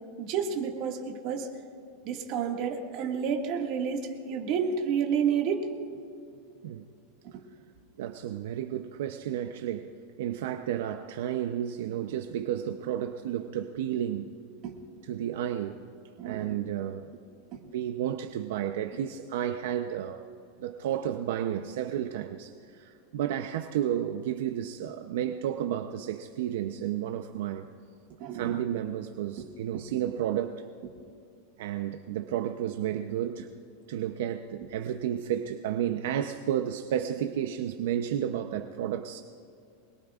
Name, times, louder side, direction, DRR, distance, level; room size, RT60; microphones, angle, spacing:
voice 1, 0.2-1.5 2.0-6.0 7.3-7.4 14.6-14.8 16.2-16.5 28.2-28.6 29.4-29.5 29.7-29.8, right 7 dB, 45° right, 1 dB, 2.0 m, -30 dB
voice 2, 8.0-9.9 10.2-14.3 15.1-15.8 16.2-17.1 17.6-20.2 20.6-27.7 28.3-30.6 31.6-33.5 33.9-39.2, right 10 dB, 75° right, 6 dB, 0.7 m, -32 dB
24.5 x 21.5 x 2.5 m, 2.5 s
supercardioid pair, 155°, 0 cm